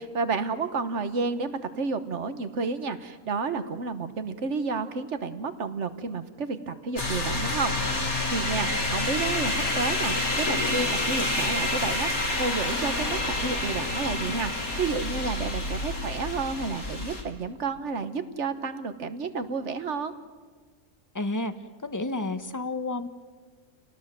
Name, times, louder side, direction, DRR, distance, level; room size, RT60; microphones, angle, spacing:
voice 1, 0.0-20.1, right 4 dB, 55° right, 10 dB, 1.5 m, -31 dB
sound 1, 7.0-17.2, left 2 dB, 80° left, 3.8 m, -28 dB
voice 2, 21.1-21.5 21.8-23.1, left 2 dB, 15° left, 10 dB, 1.0 m, -30 dB
29.0 x 18.5 x 7.5 m, 1.5 s
omnidirectional pair, 1.5 m